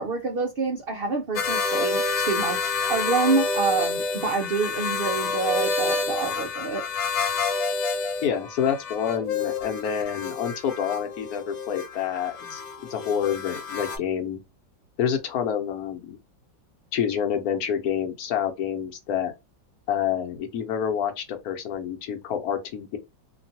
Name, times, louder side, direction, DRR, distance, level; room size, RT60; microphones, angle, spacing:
voice 1, 0.0-6.8, right 4 dB, 60° right, 0.6 m, -27 dB
sound 1, 1.4-14.0, left 4 dB, 80° left, 1.4 m, -28 dB
voice 2, 8.2-12.6 12.9-14.4 15.0-16.2 16.9-19.3 19.9-23.0, left 8 dB, 65° left, 1.2 m, -28 dB
3.0 x 2.3 x 2.7 m
omnidirectional pair, 1.9 m